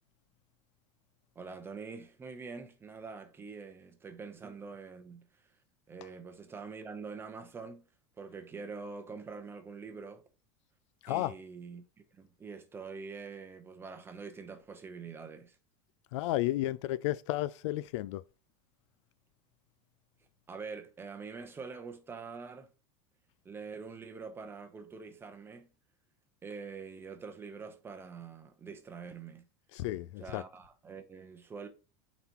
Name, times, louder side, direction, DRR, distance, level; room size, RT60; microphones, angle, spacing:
voice 1, 1.3-5.5 5.9-7.8 8.2-10.2 11.1-11.8 12.1-15.6 20.5-22.7 23.4-25.7 26.4-29.5 30.2-31.7, right 5 dB, 15° right, 0.8 m, -45 dB
voice 2, 16.1-18.2 29.7-30.4, left 16 dB, 70° left, 0.4 m, -32 dB
9.0 x 4.1 x 3.0 m
supercardioid pair, 160°, 16 cm